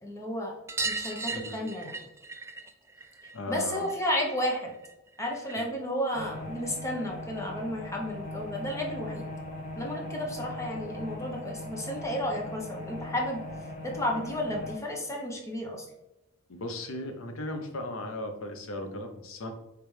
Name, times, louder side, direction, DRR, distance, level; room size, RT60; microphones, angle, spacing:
voice 1, 0.0-0.6 0.8-2.0 3.5-4.7 5.2-9.3 9.8-13.4 13.8-15.9, left 1 dB, 15° left, 0 dB, 0.8 m, -32 dB
sound 1, 0.7-5.8 6.1-7.2 8.6-8.7 8.9-9.0 9.3-9.4 10.7-10.8 11.1-11.2 11.5-11.6 12.8-12.9 13.7-13.8, right 3 dB, 15° right, 0.3 m, -39 dB
voice 2, 1.3-1.7 3.3-3.9 5.6-5.7 16.5-19.5, left 1 dB, 85° left, 5 dB, 0.7 m, -37 dB
sound 2, 6.1-14.8, left 1 dB, 40° left, 1.2 m, -40 dB
4.9 x 3.3 x 3.2 m, 0.95 s
head